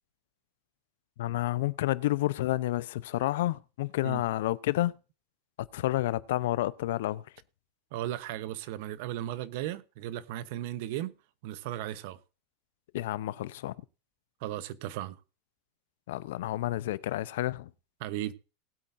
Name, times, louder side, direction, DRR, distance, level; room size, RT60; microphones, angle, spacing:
voice 1, 1.2-4.9 5.7-7.2 12.9-13.7 16.1-17.7, left 15 dB, 75° left, 0.6 m, -30 dB
voice 2, 7.9-11.1 11.4-12.2 14.4-15.2 18.0-18.3, right 13 dB, 55° right, 0.9 m, -36 dB
19.5 x 8.6 x 2.6 m
supercardioid pair, 165°, 0 cm